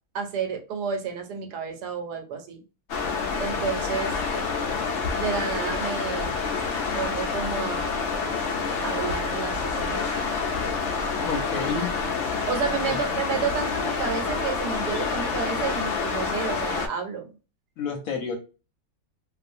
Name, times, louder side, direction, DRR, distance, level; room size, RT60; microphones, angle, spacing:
voice 1, 0.1-2.6 3.4-4.1 5.1-6.4 6.9-7.9 8.8-10.1 12.5-17.3, right 6 dB, 75° right, 5 dB, 1.2 m, -31 dB
sound 1, 2.9-16.9, left 4 dB, 80° left, 0.6 m, -28 dB
voice 2, 11.2-11.9 12.9-13.0 17.8-18.4, left 5 dB, 65° left, 3 dB, 0.9 m, -29 dB
2.6 x 2.4 x 2.5 m, 0.31 s
omnidirectional pair, 1.8 m